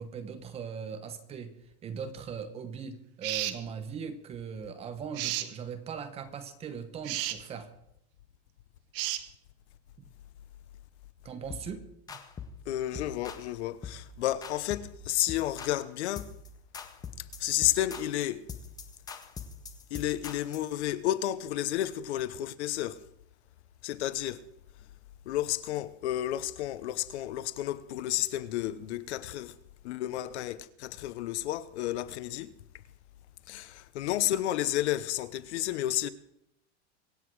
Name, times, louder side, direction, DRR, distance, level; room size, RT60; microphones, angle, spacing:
voice 1, 0.0-1.5 1.8-7.7 10.0-10.1 11.2-12.2, right 6 dB, 20° right, 1.0 m, -40 dB
sound 1, 3.2-3.6 5.2-5.5 7.0-7.4 8.9-9.2, right 14 dB, 55° right, 1.1 m, -32 dB
sound 2, 11.5-11.7 12.1-12.6 12.9-13.5 13.8-14.1 14.4-15.0 15.3-15.8 16.2-16.5 16.7-20.7, left 6 dB, 10° left, 0.7 m, -43 dB
voice 2, 12.7-16.3 17.4-18.4 19.9-23.0 23.8-24.4 25.3-29.5 29.8-32.5 33.5-36.1, left 13 dB, 80° left, 1.0 m, -31 dB
24.5 x 8.3 x 4.7 m
supercardioid pair, 175°, 33 cm